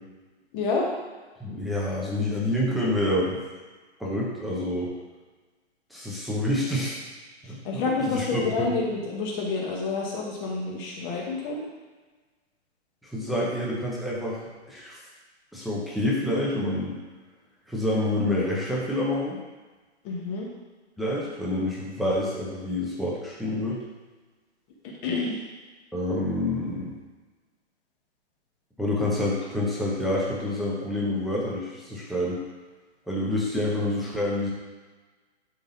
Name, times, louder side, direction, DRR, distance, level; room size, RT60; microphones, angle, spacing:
voice 1, 0.5-0.9 7.6-11.6 20.0-20.5 25.0-25.4, left 3 dB, 25° left, -2 dB, 1.6 m, -28 dB
voice 2, 1.4-3.4 4.0-4.9 5.9-7.0 7.5-7.6 8.0-8.7 13.1-15.0 15.5-16.9 17.7-19.4 21.0-23.8 25.9-26.9 28.8-32.4 33.1-34.5, left 1 dB, ahead, -6 dB, 0.9 m, -27 dB
11.5 x 3.9 x 4.0 m, 1.3 s
hypercardioid pair, 155°, 35 cm